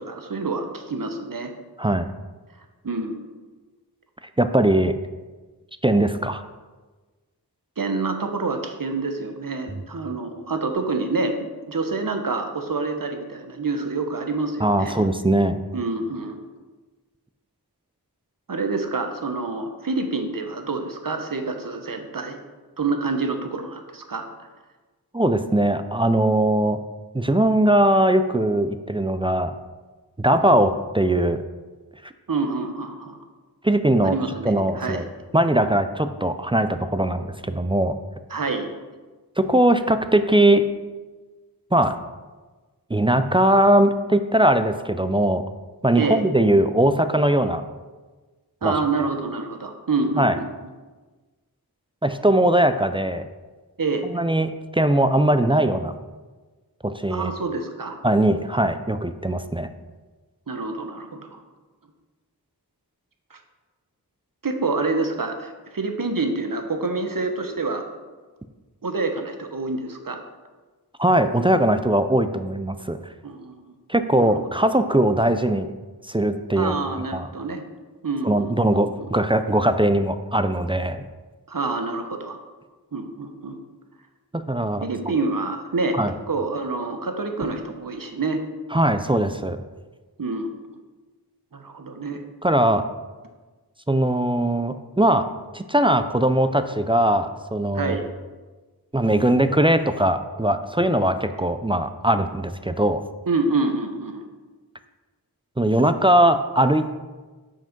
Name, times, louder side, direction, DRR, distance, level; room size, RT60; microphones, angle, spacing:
voice 1, 0.0-1.5 2.8-3.2 7.8-11.4 11.7-15.0 15.7-16.4 18.5-22.4 22.8-24.2 32.3-33.2 34.0-35.0 38.3-38.7 46.0-46.2 48.6-50.5 53.8-54.0 57.1-58.0 60.5-61.4 63.3-63.4 64.4-67.8 68.8-70.2 73.2-73.6 74.2-74.3 76.5-77.6 78.0-79.1 81.5-82.4 82.9-83.6 84.8-86.0 86.3-88.4 90.2-90.5 91.5-92.2 97.7-98.0 103.3-104.2, right 3 dB, 55° right, 5 dB, 0.8 m, -27 dB
voice 2, 4.4-4.9 5.8-6.4 14.6-15.6 25.1-26.8 27.1-29.5 30.2-31.4 32.0-32.1 33.6-34.2 34.4-35.0 35.3-38.0 39.4-40.7 41.7-42.0 42.9-45.4 45.8-47.6 48.6-48.7 50.2-50.4 52.0-53.3 54.0-55.9 56.8-57.3 58.0-59.7 71.0-73.0 73.9-75.7 76.1-76.7 77.1-77.3 78.2-81.0 84.3-84.8 86.0-86.1 88.7-89.6 92.4-92.8 93.9-95.3 95.5-97.9 98.9-103.0 105.6-106.9, right 1 dB, 15° right, 10 dB, 0.3 m, -20 dB
5.8 x 5.0 x 5.2 m, 1.3 s
wide cardioid pair, 40°, 39 cm